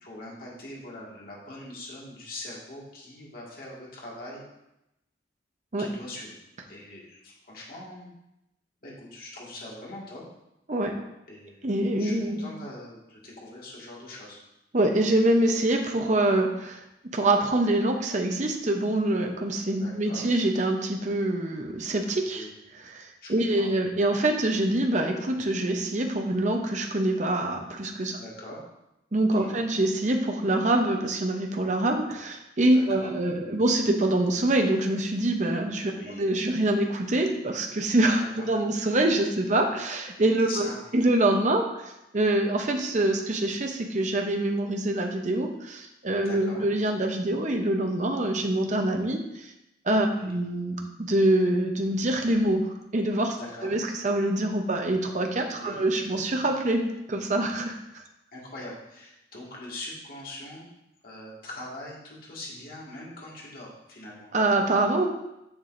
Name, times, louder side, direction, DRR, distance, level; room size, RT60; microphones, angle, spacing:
voice 1, 0.0-4.5 5.8-6.4 6.7-8.1 8.8-10.2 11.3-14.4 19.4-19.5 19.8-20.3 22.3-22.5 23.2-23.7 28.2-28.6 29.4-29.6 32.7-33.1 35.9-36.2 38.2-38.5 40.4-40.8 46.2-46.7 50.1-50.3 53.4-53.7 55.4-55.8 58.3-60.7 61.0-64.3, left 1 dB, 50° left, -4 dB, 1.9 m, -42 dB
voice 2, 11.6-12.5 14.7-22.5 22.9-28.2 29.1-49.5 49.8-52.6 52.9-53.4 53.6-58.0 64.3-65.1, right 1 dB, 40° right, 3 dB, 0.7 m, -25 dB
7.1 x 6.8 x 2.6 m, 0.88 s
head